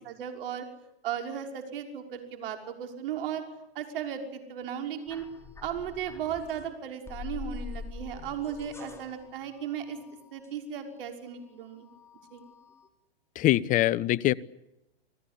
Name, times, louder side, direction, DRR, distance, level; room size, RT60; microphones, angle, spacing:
voice 1, 0.0-0.7 1.0-3.4 3.7-5.3 5.6-10.0 10.3-11.9 12.3-12.4, right 8 dB, 60° right, 5 dB, 6.0 m, -36 dB
sound 1, 5.1-6.7 7.1-11.1 11.4-12.9, left 5 dB, 10° left, 3.7 m, -45 dB
voice 2, 13.4-14.3, left 15 dB, 25° left, 18 dB, 0.9 m, -23 dB
29.5 x 19.5 x 8.5 m, 0.89 s
hypercardioid pair, 125°, 31 cm